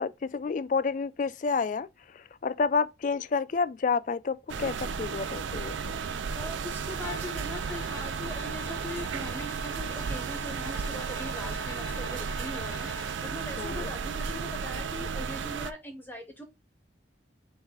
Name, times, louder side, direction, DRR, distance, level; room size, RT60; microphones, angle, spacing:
voice 1, 0.0-6.0 13.6-13.9, left 5 dB, 40° left, 0.3 m, -30 dB
sound 1, 4.5-15.7, right 5 dB, 80° right, 0.5 m, -34 dB
voice 2, 6.4-16.4, left 1 dB, 10° left, 0.6 m, -41 dB
Bowed string instrument, 7.0-13.2, left 4 dB, 80° left, 1.3 m, -45 dB
4.0 x 3.5 x 3.5 m
head